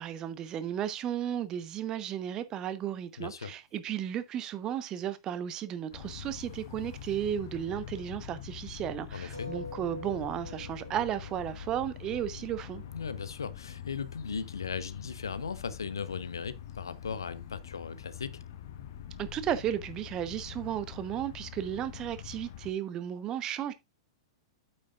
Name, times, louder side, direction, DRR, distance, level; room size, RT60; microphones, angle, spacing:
voice 1, 0.0-12.8 19.2-23.7, right 10 dB, 25° right, 1.0 m, -34 dB
voice 2, 3.2-3.5 9.1-9.5 12.9-18.4, left 6 dB, 70° left, 0.8 m, -37 dB
sound 1, 5.9-22.7, left 9 dB, 50° left, 1.1 m, -45 dB
sound 2, 9.3-14.3 15.1-15.2 15.5-15.6, left 2 dB, 75° right, 2.9 m, -47 dB
8.9 x 8.6 x 2.4 m
figure-of-eight pair, 100°, 2 cm